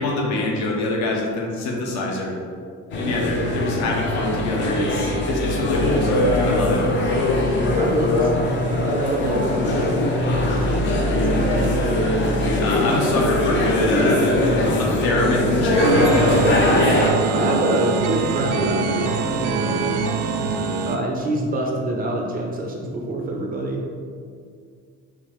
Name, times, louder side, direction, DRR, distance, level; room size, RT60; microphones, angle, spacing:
voice 1, 0.0-2.4 2.9-6.9 12.4-14.3 14.8-16.2, left 2 dB, 65° left, -1 dB, 0.9 m, -24 dB
sound 1, 2.9-17.1, left 1 dB, 40° left, 0.5 m, -21 dB
voice 2, 7.6-11.7 16.9-17.0 17.3-19.9 20.8-23.8, right 1 dB, 30° right, 0 dB, 0.4 m, -27 dB
sound 2, 10.3-14.0, right 2 dB, 85° left, 1.5 m, -29 dB
sound 3, 15.8-21.0, right 5 dB, 90° right, 0.5 m, -24 dB
5.9 x 2.4 x 3.5 m, 2.2 s
cardioid pair, 180°, 30 cm